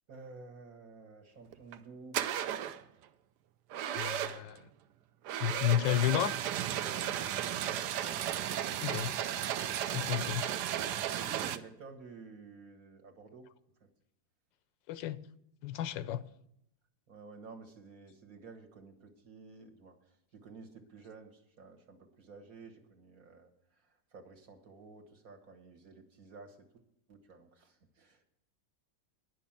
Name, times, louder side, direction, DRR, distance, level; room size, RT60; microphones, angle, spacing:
voice 1, 0.1-2.3 6.8-7.8 11.0-13.5 13.8-13.9 16.1-16.2 17.1-23.5 24.1-26.8 27.1-28.2, right 4 dB, 55° right, 1.7 m, -52 dB
sound 1, 1.5-1.8 2.1-2.8 3.7-4.6 5.2-11.6, right 10 dB, 70° right, 1.1 m, -34 dB
voice 2, 3.9-4.6 5.4-6.3 8.8-9.1 9.9-10.4 14.9-15.2 15.6-16.2, left 12 dB, 85° left, 1.3 m, -31 dB
10.0 x 6.2 x 8.7 m
omnidirectional pair, 1.9 m